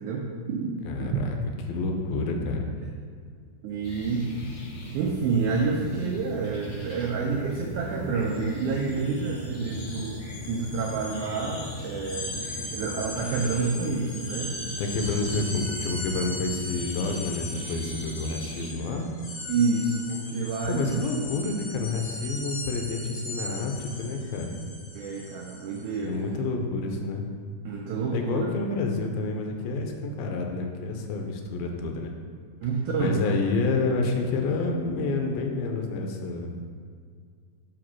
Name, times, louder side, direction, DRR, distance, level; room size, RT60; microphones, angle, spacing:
voice 1, 0.0-0.7 1.0-1.1 3.6-4.3 4.9-12.4 12.7-14.5 19.5-21.0 24.9-26.5 27.6-28.5 32.6-33.2, right 4 dB, 85° right, -1 dB, 1.7 m, -28 dB
voice 2, 0.8-1.4 1.7-2.7 14.8-19.1 20.6-24.6 26.0-27.3 28.1-32.1 33.0-36.5, left 3 dB, 85° left, 3 dB, 2.4 m, -29 dB
sound 1, 3.8-18.7, left 1 dB, 65° left, 1.1 m, -39 dB
sound 2, 8.2-8.4 8.7-25.9, left 1 dB, 40° left, 2.5 m, -39 dB
5.2 x 5.0 x 5.9 m, 2.1 s
omnidirectional pair, 4.2 m